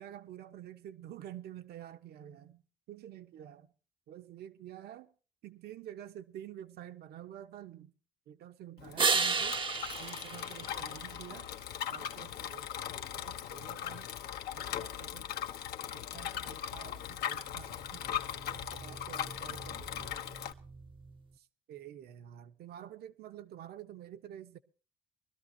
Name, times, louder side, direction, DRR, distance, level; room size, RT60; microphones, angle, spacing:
voice 1, 0.0-3.7 4.1-5.1 5.4-7.9 8.3-9.6 10.0-11.5 11.9-14.1 14.5-15.3 15.8-20.2 21.4-24.6, right 11 dB, 70° right, 1.3 m, -49 dB
Bicycle, 8.8-20.5, left 10 dB, 70° left, 1.1 m, -39 dB
sound 1, 9.0-11.5 17.3-21.3, right 4 dB, 30° right, 0.8 m, -36 dB
23.0 x 13.0 x 2.9 m
cardioid pair, 110°, 17 cm